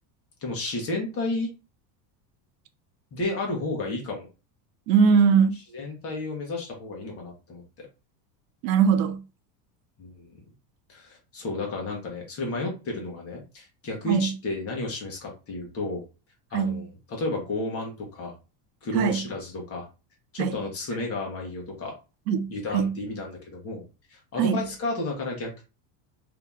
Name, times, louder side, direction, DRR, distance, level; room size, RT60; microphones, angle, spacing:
voice 1, 0.4-1.5 3.1-4.3 5.7-7.9 10.0-10.4 10.9-16.0 16.5-18.3 18.8-19.9 20.3-21.9 22.5-23.8 24.1-25.6, left 2 dB, 30° left, 1.2 m, -32 dB
voice 2, 4.9-5.6 8.6-9.2 14.1-14.4 16.5-16.9 18.9-19.3 20.4-20.5 22.3-23.0 24.4-24.7, right 6 dB, 80° right, 0.7 m, -21 dB
2.9 x 2.7 x 3.5 m
cardioid pair, 165°, 49 cm